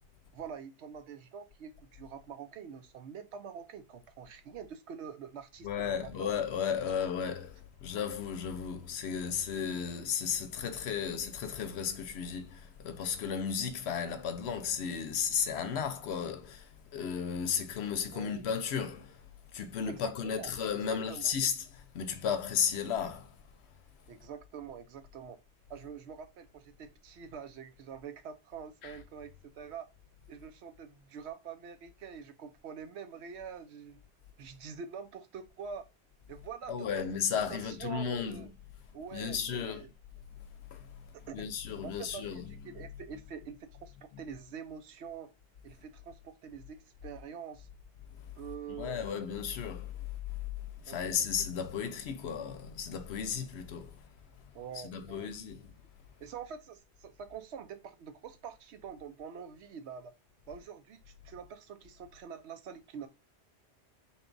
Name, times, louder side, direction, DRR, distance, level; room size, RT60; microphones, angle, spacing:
voice 1, 0.3-6.3 18.1-18.5 19.9-20.5 20.8-21.3 24.1-25.4 25.7-29.9 30.3-34.0 34.4-35.8 36.3-36.9 37.3-38.5 38.9-39.9 41.3-41.5 41.8-45.3 45.6-46.8 47.0-47.7 48.3-49.0 50.9-51.3 54.5-55.3 56.2-60.1 60.5-63.1, right 7 dB, 80° right, 0.9 m, -45 dB
voice 2, 5.6-19.2 19.5-23.3 28.8-28.9 36.7-38.5 39.1-39.9 40.7-40.9 41.3-42.4 48.7-50.0 50.8-54.0 54.8-55.7, left 7 dB, 75° left, 0.8 m, -34 dB
3.9 x 2.3 x 3.8 m
omnidirectional pair, 1.1 m